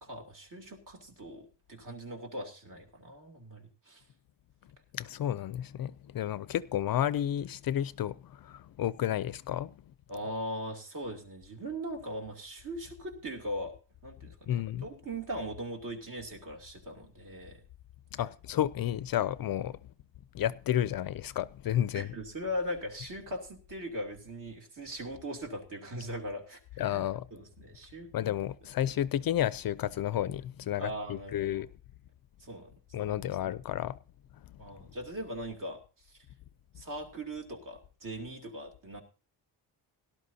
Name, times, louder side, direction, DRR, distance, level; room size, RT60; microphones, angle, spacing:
voice 1, 0.0-4.0 10.1-13.7 14.0-17.6 21.7-26.6 26.9-27.0 27.3-28.1 30.8-31.6 32.4-32.7 33.0-33.1 34.6-35.8 36.1-36.2 36.8-39.0, equal, 45° right, 2.8 m, -40 dB
voice 2, 4.9-9.7 14.5-14.9 18.1-19.8 20.3-22.1 26.8-27.3 28.1-31.7 32.9-34.0, left 11 dB, 55° left, 0.5 m, -31 dB
18.0 x 12.0 x 2.8 m
wide cardioid pair, 150°, 43 cm